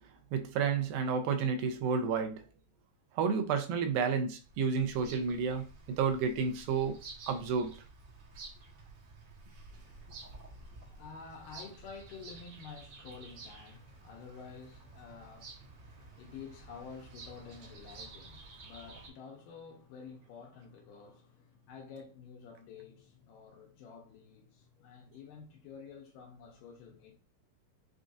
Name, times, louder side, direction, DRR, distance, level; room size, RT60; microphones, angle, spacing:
voice 1, 0.3-2.4 3.2-5.7 6.0-7.0 7.3-7.7, right 6 dB, 85° right, 2.4 m, -30 dB
Bird vocalization bird call bird song, 4.4-19.1, right 3 dB, 65° right, 1.6 m, -52 dB
voice 2, 9.7-27.1, left 5 dB, 75° left, 2.3 m, -50 dB
6.1 x 2.5 x 2.5 m
omnidirectional pair, 4.1 m